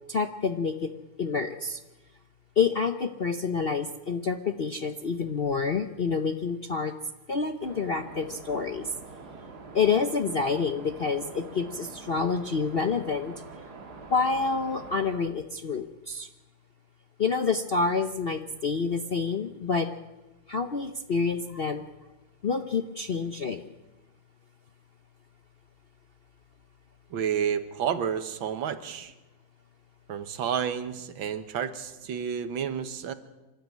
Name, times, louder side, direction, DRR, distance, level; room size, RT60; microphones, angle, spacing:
voice 1, 0.1-0.9 1.2-1.8 2.6-6.9 7.3-8.9 9.7-13.3 14.1-16.3 17.2-19.9 20.5-21.8 22.4-23.6, left 5 dB, 55° left, 7 dB, 0.7 m, -28 dB
sound 1, 7.6-15.2, right 3 dB, 55° right, 2.4 m, -45 dB
voice 2, 27.1-29.1 30.1-33.1, right 8 dB, 85° right, 11 dB, 1.9 m, -30 dB
26.0 x 12.5 x 9.4 m, 1.1 s
omnidirectional pair, 2.1 m